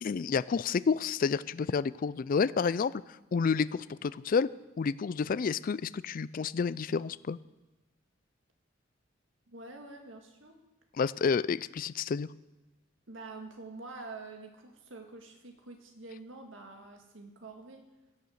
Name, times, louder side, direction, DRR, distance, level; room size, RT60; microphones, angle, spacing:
voice 1, 0.0-2.9 3.3-4.5 4.8-7.4 11.0-12.3, left 5 dB, 45° left, 18 dB, 0.3 m, -29 dB
voice 2, 9.5-10.6 13.1-17.8, right 3 dB, 90° right, 3 dB, 2.0 m, -47 dB
16.5 x 6.9 x 6.5 m, 1.1 s
head